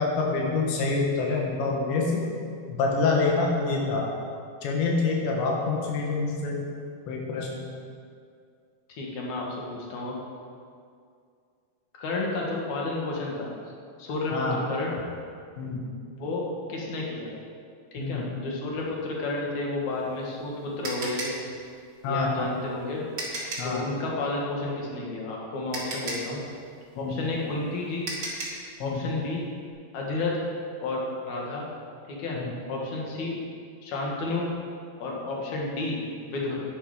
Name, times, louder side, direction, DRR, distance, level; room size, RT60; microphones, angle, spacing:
voice 1, 0.0-2.2 2.7-4.1 4.6-6.6 7.1-7.6 14.3-14.6 15.6-15.8 18.0-18.3 22.0-22.5 23.6-23.9 27.0-27.2 28.8-29.0 32.4-32.5 35.2-35.3, left 3 dB, 85° left, -1 dB, 3.7 m, -26 dB
voice 2, 8.9-10.2 11.9-13.5 14.0-14.9 16.1-17.3 17.9-21.4 22.1-23.0 23.6-26.4 27.0-28.1 28.8-29.4 29.9-30.4 30.8-31.7 32.1-32.4 32.7-33.4 33.8-34.5 35.0-36.6, left 2 dB, 55° left, -2 dB, 2.6 m, -31 dB
sound 1, 19.9-23.8 25.2-25.3 25.7-28.7, right 2 dB, 45° right, 1.4 m, -35 dB
11.0 x 9.9 x 5.0 m, 2.3 s
omnidirectional pair, 4.9 m